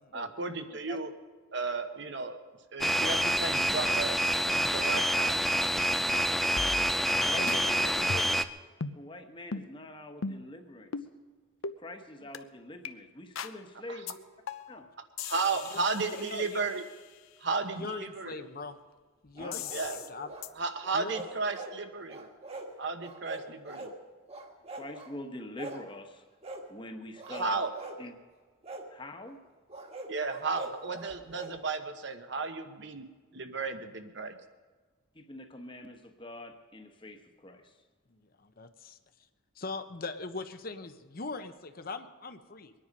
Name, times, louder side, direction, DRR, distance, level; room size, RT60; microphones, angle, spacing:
voice 1, 0.1-1.1 1.5-2.4 2.7-5.4 6.0-6.3 7.4-8.4 15.2-16.8 17.4-18.5 19.7-20.0 20.6-22.3 22.8-23.9 27.3-27.7 30.1-33.0 33.3-34.4, right 4 dB, 55° right, 8 dB, 1.1 m, -34 dB
sound 1, 2.8-8.5, equal, ahead, 0.4 m, -27 dB
sound 2, 6.6-7.2 7.5-7.6 8.1-8.5 8.8-9.0 9.5-9.7 10.2-10.5 10.9-11.1 11.6-11.8 12.3-12.4 12.8-12.9 13.4-13.6 14.1-14.2 14.5-14.8 15.2-17.0 19.5-20.1 20.4-20.5, left 5 dB, 75° left, 0.7 m, -39 dB
voice 2, 7.1-7.8 8.3-8.4 8.9-10.9 11.8-14.2 14.7-14.9 19.4-19.6 24.7-26.2 26.7-27.6 28.0-28.1 28.9-29.4 35.1-37.7, left 1 dB, 25° left, 6 dB, 1.2 m, -44 dB
voice 3, 16.0-16.7 17.7-18.8 19.2-20.3 20.9-21.2 38.1-39.3 39.5-42.7, left 3 dB, 45° left, 9 dB, 0.8 m, -41 dB
sound 3, 19.4-20.5 20.8-21.7 22.1-22.7 23.0-24.0 24.3-25.1 25.6-25.9 26.4-26.6 27.1-28.0 28.6-28.9 29.7-31.5, right 2 dB, 30° right, 1.5 m, -43 dB
23.5 x 10.0 x 5.3 m, 1.4 s
head